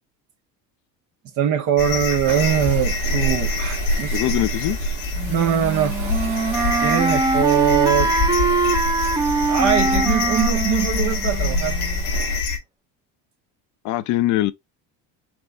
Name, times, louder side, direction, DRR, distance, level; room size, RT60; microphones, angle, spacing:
voice 1, 1.4-4.3 5.3-6.0 6.8-8.1 9.5-11.8, right 9 dB, 50° right, 0.7 m, -22 dB
sound 1, 1.8-12.6, left 2 dB, 85° left, 1.3 m, -25 dB
Waves surf, 2.3-12.4, right 6 dB, 75° right, 1.9 m, -38 dB
voice 2, 4.1-4.8 13.8-14.5, left 15 dB, 50° left, 0.5 m, -22 dB
Wind instrument woodwind instrument, 5.2-12.0, right 3 dB, 10° right, 0.5 m, -23 dB
4.4 x 2.6 x 3.3 m
cardioid pair, 120°, 38 cm